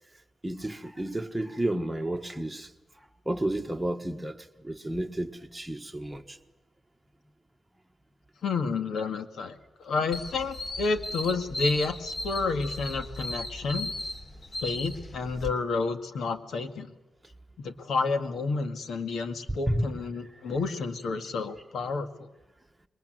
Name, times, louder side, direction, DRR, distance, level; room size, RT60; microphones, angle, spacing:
voice 1, 0.4-2.7 3.2-6.4 19.5-19.9, right 1 dB, 10° right, 1.4 m, -31 dB
voice 2, 8.4-9.6 9.8-13.9 14.6-16.9 17.6-22.3, left 4 dB, 80° left, 2.0 m, -30 dB
sound 1, 10.1-15.5, left 1 dB, 35° left, 3.0 m, -36 dB
26.5 x 22.0 x 9.3 m
wide cardioid pair, 135°, 0 cm